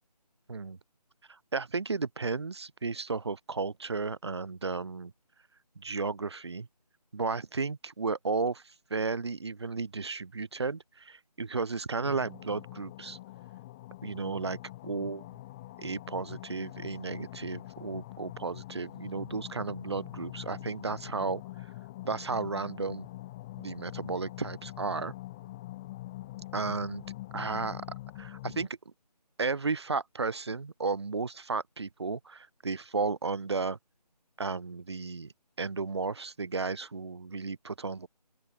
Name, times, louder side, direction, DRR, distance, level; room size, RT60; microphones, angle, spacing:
voice 1, 1.3-5.1 5.8-6.7 7.1-13.2 14.0-14.6 14.8-15.3 15.8-21.4 22.0-23.1 23.6-25.1 26.5-27.1 27.3-27.9 28.2-28.9 29.4-33.8 34.4-35.3 35.6-38.1, right 4 dB, 40° right, 2.0 m, -33 dB
sound 1, 12.0-28.7, left 16 dB, 10° left, 2.7 m, -44 dB
open air
figure-of-eight pair, 170°, 21 cm